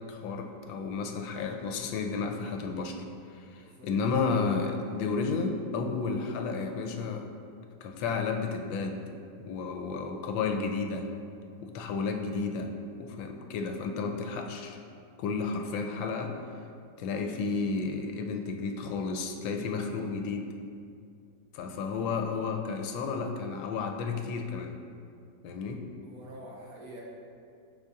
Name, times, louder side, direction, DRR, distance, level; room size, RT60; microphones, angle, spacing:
voice 1, 0.0-3.0 3.5-7.2 7.8-9.0 9.4-11.1 11.6-12.7 13.0-14.8 15.2-16.3 17.0-20.5 21.5-24.7 25.4-25.8, left 4 dB, 85° left, 4 dB, 1.3 m, -32 dB
voice 2, 3.5-3.9 26.0-27.0, right 1 dB, 60° right, -4 dB, 1.2 m, -47 dB
6.4 x 4.1 x 3.6 m, 2.4 s
omnidirectional pair, 2.0 m